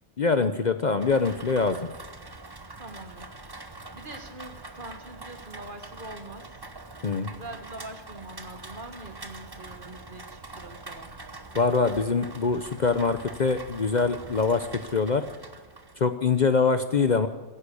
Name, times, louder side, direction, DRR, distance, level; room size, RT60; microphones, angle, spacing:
voice 1, 0.2-1.8 7.0-7.3 11.5-15.2 16.0-17.3, left 4 dB, 45° left, 9 dB, 0.8 m, -24 dB
Rain, 1.0-16.0, right 2 dB, 20° right, 0.9 m, -44 dB
voice 2, 2.8-3.3 3.9-6.5 7.3-11.1, right 2 dB, 45° right, 7 dB, 1.7 m, -43 dB
16.5 x 10.0 x 8.5 m, 1.3 s
omnidirectional pair, 1.2 m